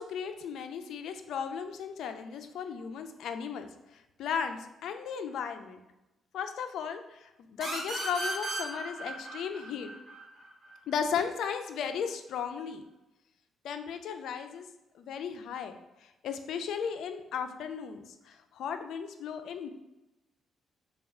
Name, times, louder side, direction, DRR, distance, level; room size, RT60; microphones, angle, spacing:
voice 1, 0.0-5.8 6.3-7.3 7.6-9.9 10.9-12.8 13.6-14.7 14.9-19.7, left 7 dB, 75° left, 7 dB, 0.4 m, -36 dB
sound 1, 7.6-11.0, right 2 dB, 40° right, 1.2 m, -37 dB
3.3 x 2.3 x 4.3 m, 0.95 s
cardioid pair, 90°, 0 cm